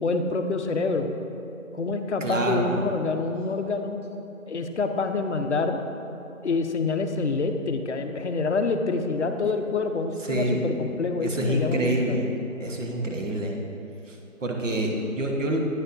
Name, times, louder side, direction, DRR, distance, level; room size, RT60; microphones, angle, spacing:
voice 1, 0.0-1.1 1.7-4.0 4.5-5.8 6.4-12.2, left 3 dB, 55° left, 6 dB, 0.5 m, -27 dB
voice 2, 2.2-2.8 10.2-10.6 11.2-12.3 12.6-13.6 14.1-15.6, right 1 dB, 60° right, 1 dB, 1.1 m, -27 dB
8.9 x 6.6 x 2.6 m, 2.9 s
figure-of-eight pair, 175°, 42 cm